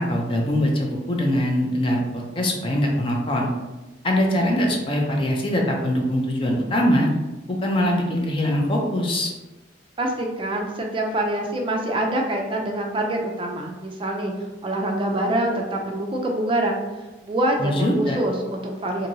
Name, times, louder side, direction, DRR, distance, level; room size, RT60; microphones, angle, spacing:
voice 1, 0.0-3.5 4.0-7.1 7.5-9.3 17.6-18.2, left 1 dB, 30° left, 0 dB, 0.5 m, -22 dB
voice 2, 10.0-14.3 14.6-16.8 17.2-19.1, right 1 dB, 30° right, 1 dB, 0.3 m, -25 dB
2.9 x 2.6 x 2.6 m, 1.1 s
head